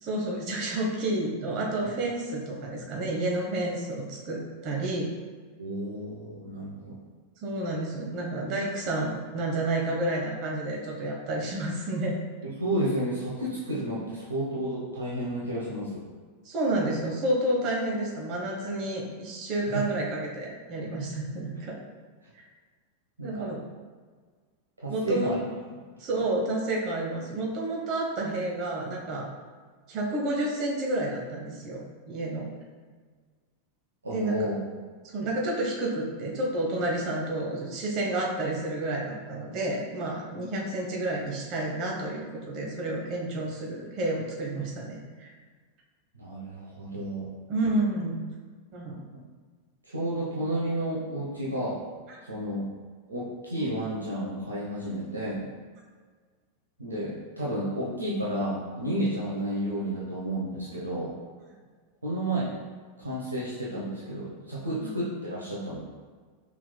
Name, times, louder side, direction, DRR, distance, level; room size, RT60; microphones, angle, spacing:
voice 1, 0.0-5.1 7.4-12.1 12.4-12.5 16.4-21.8 22.3-22.4 23.2-23.6 24.9-25.3 26.0-29.3 29.9-32.5 34.1-34.5 35.1-45.3 47.5-48.2 48.7-49.0 64.8-64.9, right 1 dB, 40° right, -1 dB, 1.0 m, -30 dB
voice 2, 5.6-7.0 12.4-16.0 23.2-23.5 24.8-25.4 34.0-34.6 40.3-40.5 46.1-47.3 49.9-51.8 52.3-52.7 53.1-55.5 56.8-61.1 62.0-62.5 63.0-65.8, right 1 dB, 80° right, -6 dB, 0.9 m, -31 dB
5.9 x 3.5 x 2.2 m, 1.5 s
figure-of-eight pair, 90°, 0 cm